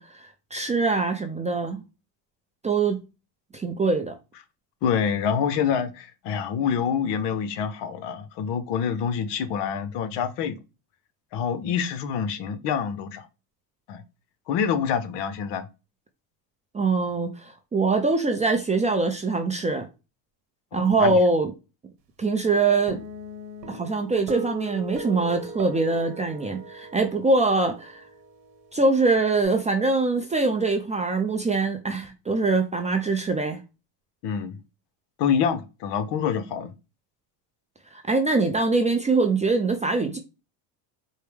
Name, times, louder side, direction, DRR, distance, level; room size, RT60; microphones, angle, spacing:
voice 1, 0.0-1.8 2.6-3.0 3.5-4.1 16.7-19.9 20.7-21.5 22.2-23.0 23.7-28.0 28.7-33.6 37.9-40.2, right 3 dB, 15° right, 0.4 m, -23 dB
voice 2, 4.8-10.6 11.3-13.3 13.9-14.0 14.5-15.7 20.7-21.2 34.2-34.6 35.2-36.7, left 7 dB, 55° left, 0.8 m, -26 dB
Guitar, 22.9-29.4, right 2 dB, 85° right, 1.2 m, -40 dB
4.5 x 2.1 x 3.2 m
supercardioid pair, 100°, 50 cm